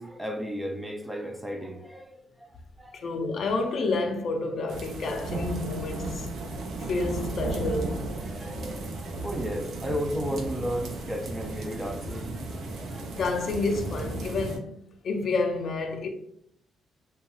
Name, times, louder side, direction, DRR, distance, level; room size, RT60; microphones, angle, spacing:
voice 1, 0.0-2.5 2.8-3.1 8.2-13.2, equal, 10° right, 0.4 m, -34 dB
voice 2, 2.9-6.3 6.8-8.0 13.1-14.8 15.0-16.1, left 3 dB, 55° left, 0.4 m, -29 dB
sound 1, 4.7-14.6, right 2 dB, 70° right, 0.5 m, -34 dB
2.8 x 2.2 x 3.0 m
cardioid pair, 90°, 0 cm